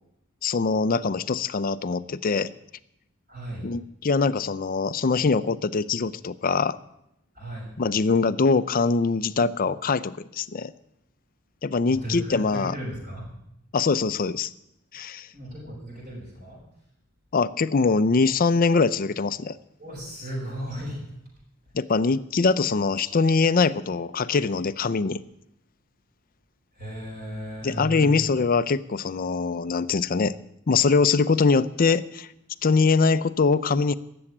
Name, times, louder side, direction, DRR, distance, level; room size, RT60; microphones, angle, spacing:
voice 1, 0.4-2.5 3.6-6.8 7.8-10.7 11.6-12.7 13.7-14.5 14.9-15.3 17.3-19.6 21.7-25.2 27.6-30.4 30.7-32.3 32.6-33.9, left 4 dB, 40° left, 14 dB, 0.5 m, -23 dB
voice 2, 3.3-3.7 7.3-7.7 11.8-13.3 15.3-16.6 19.8-21.0 26.8-28.2, right 1 dB, 40° right, -5 dB, 6.2 m, -35 dB
13.5 x 7.9 x 9.9 m, 0.80 s
head